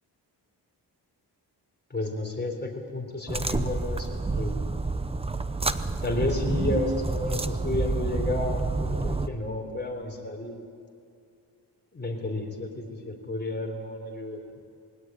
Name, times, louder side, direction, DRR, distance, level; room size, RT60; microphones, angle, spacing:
voice 1, 1.9-4.6 6.0-10.6 11.9-14.4, left 2 dB, 25° left, 2 dB, 3.8 m, -32 dB
sound 1, 3.3-9.3, right 3 dB, 15° right, 0.7 m, -28 dB
21.5 x 17.5 x 9.8 m, 2.4 s
wide cardioid pair, 125°, 42 cm